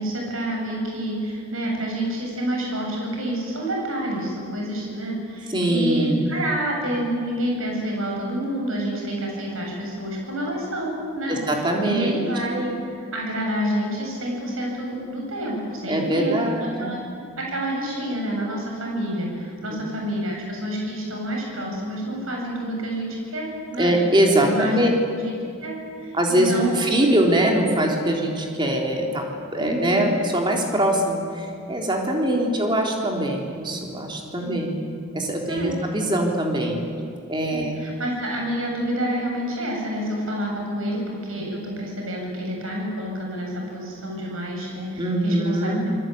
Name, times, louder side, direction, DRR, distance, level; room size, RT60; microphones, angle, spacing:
voice 1, 0.0-16.4 16.8-17.0 17.4-23.9 24.4-25.3 25.6-26.8 29.6-30.1 32.1-32.4 34.4-34.7 35.5-35.7 37.5-46.0, right 1 dB, 70° right, -1 dB, 7.9 m, -28 dB
voice 2, 5.5-6.3 11.3-12.3 15.9-17.0 19.7-19.8 23.8-24.9 26.1-29.2 29.5-34.7 35.1-36.8 37.3-37.8 45.0-45.9, right 1 dB, 20° right, 0 dB, 3.7 m, -22 dB
27.0 x 21.0 x 9.4 m, 2.4 s
head